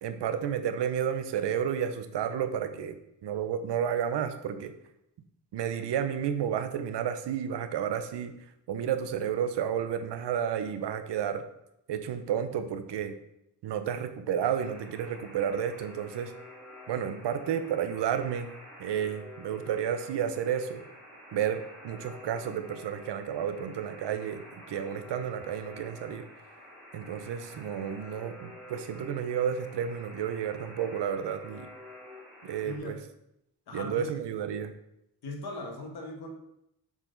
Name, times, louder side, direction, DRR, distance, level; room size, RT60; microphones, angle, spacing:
voice 1, 0.0-3.0 3.2-4.7 5.5-11.4 11.9-13.1 13.6-16.3 16.9-18.5 18.8-20.8 21.3-26.2 26.9-31.7 32.4-33.0 33.7-34.7, right 8 dB, 90° right, 9 dB, 0.7 m, -31 dB
Alarm, 14.6-32.8, left 1 dB, ahead, 1.8 m, -49 dB
voice 2, 32.6-33.0 33.7-34.1 35.2-36.3, left 2 dB, 65° left, 1 dB, 1.4 m, -39 dB
7.2 x 4.1 x 3.9 m, 0.81 s
wide cardioid pair, 175°, 40 cm